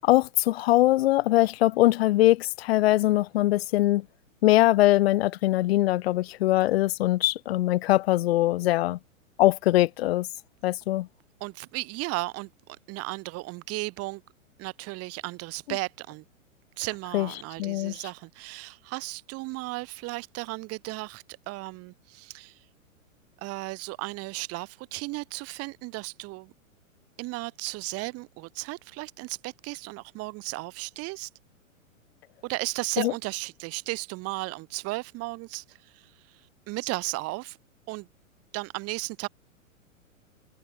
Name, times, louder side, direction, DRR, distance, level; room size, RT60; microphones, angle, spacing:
voice 1, 0.0-4.1 4.4-9.0 9.4-10.3 10.6-11.1 17.1-17.3 17.6-18.0 33.0-33.1, left 16 dB, 50° left, 0.5 m, -22 dB
voice 2, 11.4-12.5 12.9-14.2 14.6-16.2 16.8-22.6 23.4-26.5 27.2-31.3 32.4-36.1 36.7-37.6 37.9-38.1 38.5-39.3, right 23 dB, 35° right, 4.0 m, -35 dB
hypercardioid pair, 115°, 41 cm